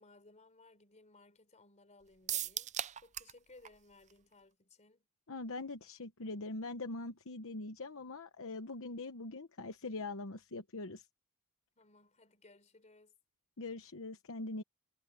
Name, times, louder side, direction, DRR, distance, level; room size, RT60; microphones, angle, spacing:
voice 1, 0.0-5.1 11.8-13.1, left 2 dB, 30° left, 3.9 m, -62 dB
sound 1, 2.3-3.4 3.7-3.8 4.1-4.2, right 11 dB, 35° right, 0.5 m, -37 dB
voice 2, 5.3-11.0 13.6-14.6, left 2 dB, 65° left, 1.0 m, -42 dB
head